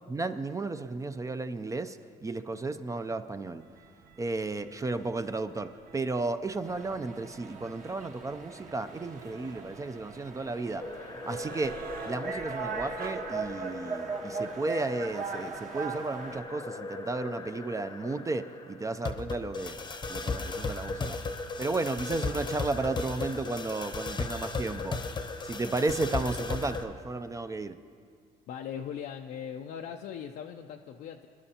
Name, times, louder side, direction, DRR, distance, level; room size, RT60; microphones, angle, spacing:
voice 1, 0.1-2.0 2.2-3.6 4.2-10.9 11.2-11.8 12.1-19.8 20.1-21.2 21.6-25.0 25.4-27.8, right 3 dB, 20° right, 10 dB, 0.4 m, -33 dB
sound 1, 3.6-13.2, right 5 dB, 65° right, 0.9 m, -49 dB
sound 2, 6.6-16.4, right 4 dB, 50° right, 1.3 m, -39 dB
sound 3, 10.8-26.8, left 3 dB, 25° left, 0.8 m, -37 dB
voice 2, 28.5-31.3, left 8 dB, 65° left, 3 dB, 0.5 m, -39 dB
24.0 x 11.0 x 2.9 m, 2.2 s
cardioid pair, 110°, 17 cm